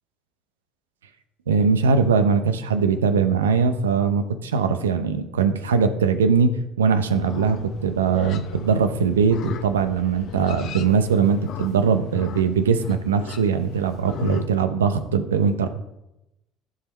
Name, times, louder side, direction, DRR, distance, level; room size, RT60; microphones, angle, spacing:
voice 1, 1.5-15.7, right 5 dB, 90° right, 9 dB, 0.6 m, -21 dB
Livestock farm animals working animals, 7.1-14.5, left 8 dB, 60° left, 0.7 m, -37 dB
14.0 x 4.9 x 3.0 m, 0.90 s
hypercardioid pair, 60°, 0 cm